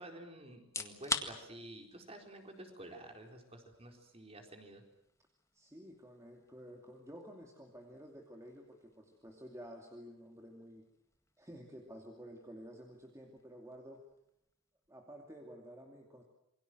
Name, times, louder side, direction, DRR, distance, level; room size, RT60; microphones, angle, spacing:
voice 1, 0.0-4.8, right 1 dB, 30° right, 4 dB, 4.3 m, -51 dB
sound 1, 0.6-15.4, left 3 dB, 15° left, 1.8 m, -49 dB
voice 2, 5.5-10.8 11.4-14.0 14.9-16.2, equal, 15° right, 1 dB, 2.6 m, -52 dB
27.5 x 23.0 x 7.8 m, 0.78 s
head